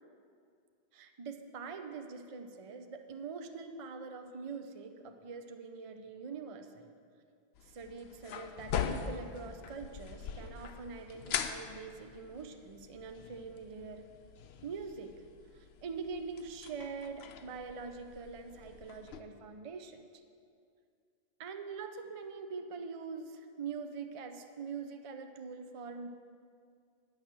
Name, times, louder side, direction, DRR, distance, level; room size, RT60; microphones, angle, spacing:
voice 1, 0.9-6.9 7.6-14.1 14.6-15.1 15.5-20.0 21.4-26.1, right 5 dB, 40° right, 6 dB, 0.6 m, -44 dB
sound 1, 7.6-19.2, left 7 dB, 85° left, 0.8 m, -42 dB
10.0 x 6.5 x 7.3 m, 2.3 s
omnidirectional pair, 1.0 m